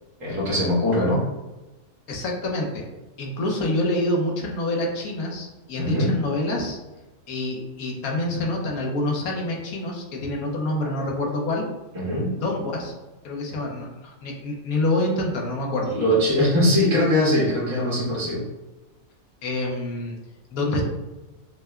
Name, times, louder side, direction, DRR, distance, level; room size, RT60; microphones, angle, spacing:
voice 1, 0.2-1.2 5.8-6.1 11.9-12.3 15.8-18.4, left 1 dB, 65° right, -6 dB, 1.9 m, -21 dB
voice 2, 2.1-2.8 3.2-6.8 7.3-11.7 12.4-12.9 13.2-16.0 19.4-20.2 20.5-20.8, left 1 dB, 80° left, 0 dB, 1.3 m, -27 dB
6.5 x 2.2 x 2.3 m, 1.1 s
omnidirectional pair, 1.5 m